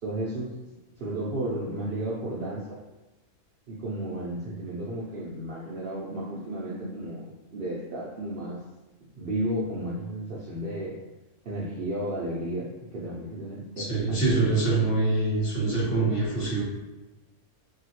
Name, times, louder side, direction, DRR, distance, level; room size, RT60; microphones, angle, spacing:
voice 1, 0.0-2.8 3.7-8.6 9.0-11.0 11.4-14.5, right 1 dB, 70° right, -6 dB, 0.5 m, -33 dB
voice 2, 13.8-16.6, right 3 dB, 40° left, -5 dB, 1.2 m, -25 dB
2.8 x 2.7 x 2.9 m, 1.1 s
omnidirectional pair, 1.6 m